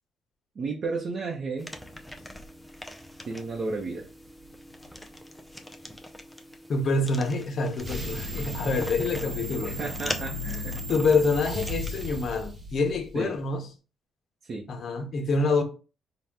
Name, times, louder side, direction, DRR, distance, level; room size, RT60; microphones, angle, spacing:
voice 1, 0.5-1.7 3.2-4.1 9.6-10.8 13.1-13.3 14.4-14.6, right 3 dB, 50° right, 0.8 m, -33 dB
sound 1, 1.6-12.1, left 1 dB, 5° left, 0.5 m, -42 dB
voice 2, 6.7-9.7 10.9-13.7 14.7-15.6, left 3 dB, 50° left, 0.8 m, -26 dB
sound 2, 7.8-13.2, equal, 20° right, 0.8 m, -35 dB
4.2 x 2.3 x 3.5 m
cardioid pair, 90°, 0 cm